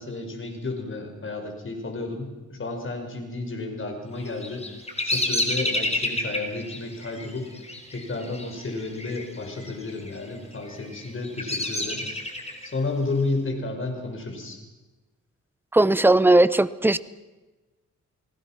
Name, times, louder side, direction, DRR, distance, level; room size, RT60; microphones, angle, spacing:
voice 1, 0.0-4.7 5.0-7.5 7.9-12.1 12.6-14.6, left 3 dB, 40° left, 4 dB, 5.6 m, -32 dB
Bird vocalization bird call bird song, 4.2-9.2 9.5-10.1 10.7-12.7, left 2 dB, 20° left, 4.4 m, -29 dB
voice 2, 15.7-17.0, right 2 dB, 5° right, 15 dB, 0.8 m, -18 dB
29.0 x 19.5 x 6.0 m, 1.2 s
cardioid pair, 95°, 30 cm